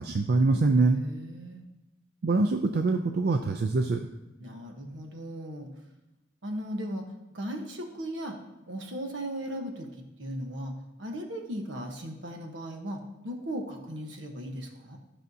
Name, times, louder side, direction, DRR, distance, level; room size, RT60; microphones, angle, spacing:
voice 1, 0.0-1.0 2.2-4.1, right 3 dB, 55° right, 5 dB, 0.4 m, -24 dB
voice 2, 0.9-1.7 4.4-5.7 6.4-7.0 7.3-8.4 8.7-15.0, equal, 75° right, 3 dB, 1.1 m, -37 dB
11.5 x 5.6 x 2.7 m, 0.95 s
head